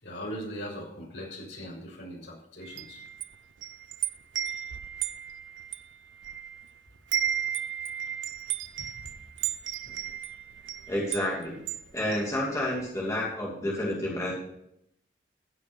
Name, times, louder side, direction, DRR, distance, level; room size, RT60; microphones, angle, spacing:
voice 1, 0.0-3.0 8.8-8.9, equal, 75° left, -3 dB, 6.6 m, -40 dB
Wind chime, 2.6-6.7 7.0-12.9, right 10 dB, 90° right, 0.6 m, -34 dB
voice 2, 10.9-11.6 11.9-14.3, left 1 dB, 20° left, -4 dB, 2.8 m, -30 dB
15.5 x 6.8 x 6.4 m, 0.76 s
head